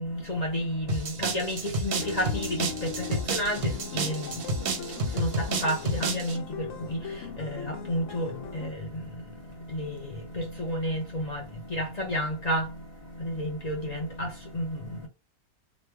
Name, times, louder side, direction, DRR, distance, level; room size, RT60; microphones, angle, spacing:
voice 1, 0.0-15.1, equal, 40° left, 0.6 m, -32 dB
sound 1, 0.9-6.4, right 2 dB, 55° right, 0.7 m, -31 dB
sound 2, 2.0-8.7, left 6 dB, 65° left, 0.9 m, -39 dB
3.1 x 2.2 x 3.3 m
omnidirectional pair, 1.5 m